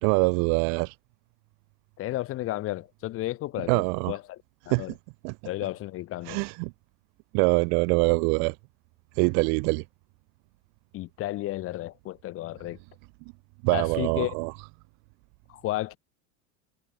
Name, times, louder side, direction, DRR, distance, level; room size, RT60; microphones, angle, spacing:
voice 1, 0.0-0.9 3.7-4.1 4.7-4.8 5.2-5.3 6.3-6.7 7.3-8.5 9.2-9.8 13.6-14.5, right 40 dB or more, 45° right, 0.5 m, -24 dB
voice 2, 2.0-4.9 5.4-6.4 10.9-12.8 13.7-14.3 15.5-16.0, left 16 dB, 35° left, 1.3 m, -33 dB
supercardioid pair, 165°, 40 cm